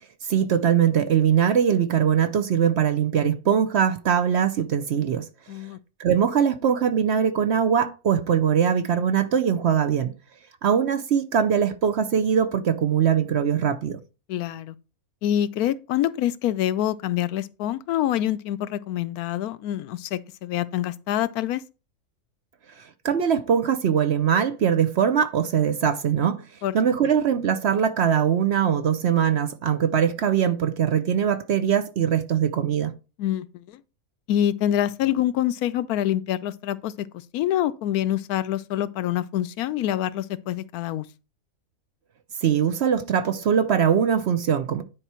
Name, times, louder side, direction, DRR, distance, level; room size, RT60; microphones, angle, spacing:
voice 1, 0.3-5.3 6.0-10.1 10.6-14.0 22.8-26.4 26.7-32.9 42.4-44.8, right 8 dB, 60° right, 0.8 m, -22 dB
voice 2, 5.5-5.8 14.3-14.7 15.2-21.6 26.6-26.8 33.2-33.8 34.3-37.1 37.3-41.1, left 12 dB, 85° left, 1.1 m, -26 dB
10.0 x 4.5 x 4.4 m
omnidirectional pair, 1.5 m